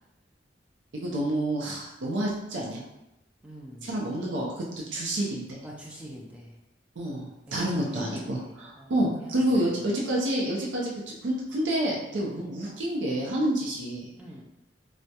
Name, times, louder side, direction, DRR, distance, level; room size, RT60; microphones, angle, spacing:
voice 1, 0.9-2.8 3.8-4.7 4.9-5.6 7.0-14.1, right 1 dB, 75° right, -3 dB, 0.4 m, -28 dB
voice 2, 3.4-3.9 5.6-6.6 7.5-8.9 9.2-9.8 12.2-12.5 14.2-14.4, equal, 5° right, -3 dB, 0.3 m, -44 dB
2.2 x 2.0 x 2.7 m, 0.90 s
head